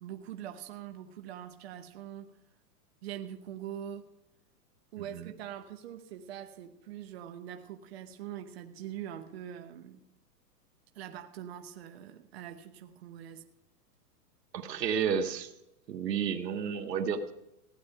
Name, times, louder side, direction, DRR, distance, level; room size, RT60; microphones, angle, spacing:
voice 1, 0.0-2.3 3.0-4.1 4.9-10.0 10.9-13.5, right 10 dB, 40° right, 1.0 m, -43 dB
voice 2, 14.5-15.5 15.9-17.3, right 7 dB, 85° right, 1.9 m, -31 dB
16.5 x 10.5 x 5.6 m
hypercardioid pair, 170°, 48 cm